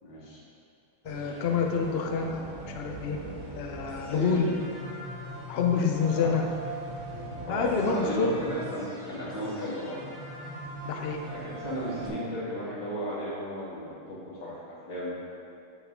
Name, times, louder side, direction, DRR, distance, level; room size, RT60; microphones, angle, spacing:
voice 1, 0.0-0.4 4.1-4.4 6.1-6.4 7.3-10.0 11.2-15.1, equal, 70° left, -7 dB, 2.6 m, -35 dB
voice 2, 1.0-3.2 3.5-4.5 5.5-6.4 7.5-8.3 10.8-11.2, left 5 dB, 85° left, 2 dB, 0.5 m, -27 dB
sound 1, 1.0-12.1, right 1 dB, 20° right, 1.1 m, -41 dB
7.9 x 7.1 x 3.7 m, 2.6 s
omnidirectional pair, 2.1 m